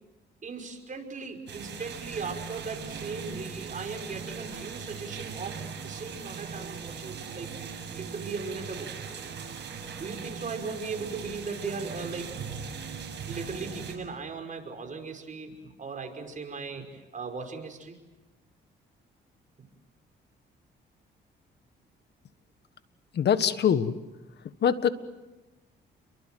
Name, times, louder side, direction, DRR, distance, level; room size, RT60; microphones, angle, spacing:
voice 1, 0.4-7.5 7.9-9.4 10.0-12.4 13.3-18.0, right 4 dB, 40° right, 4 dB, 5.6 m, -38 dB
sound 1, 1.5-14.0, right 6 dB, 60° right, 7.4 m, -39 dB
voice 2, 23.1-23.9 24.6-24.9, left 8 dB, 60° left, 12 dB, 1.6 m, -23 dB
30.0 x 23.5 x 7.8 m, 1.1 s
cardioid pair, 90°, 20 cm